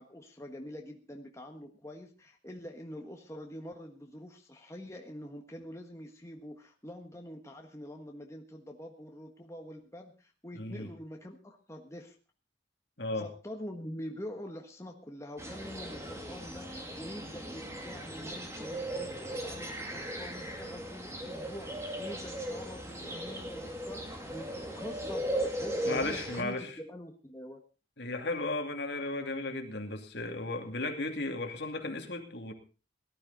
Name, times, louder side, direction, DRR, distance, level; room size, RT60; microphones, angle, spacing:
voice 1, 0.0-12.1 13.2-27.6, left 1 dB, 15° left, 2 dB, 1.5 m, -45 dB
voice 2, 10.6-10.9 13.0-13.3 25.9-26.7 28.0-32.5, left 2 dB, 65° left, 4 dB, 2.6 m, -35 dB
sound 1, 15.4-26.4, right 1 dB, 15° right, 2.4 m, -38 dB
18.5 x 12.0 x 4.1 m, 0.35 s
head